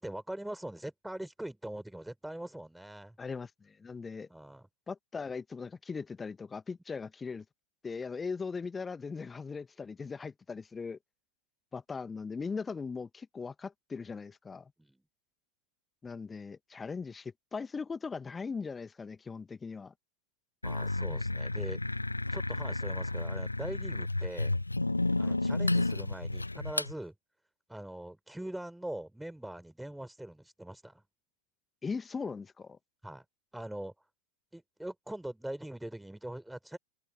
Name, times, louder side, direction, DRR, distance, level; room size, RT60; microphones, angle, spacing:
voice 1, 0.0-3.2 4.3-4.7 14.8-15.0 20.6-21.8 22.3-24.5 25.2-27.1 27.7-31.0 33.0-33.2 33.5-33.9 34.5-36.8, right 1 dB, 5° right, 4.4 m, -42 dB
voice 2, 3.2-4.3 4.9-7.4 7.8-11.0 11.7-14.7 16.0-19.9 25.2-25.3 31.8-32.8, left 5 dB, 15° left, 1.5 m, -39 dB
sound 1, 20.6-26.9, left 2 dB, 85° left, 1.3 m, -32 dB
open air
figure-of-eight pair, 90°, 0 cm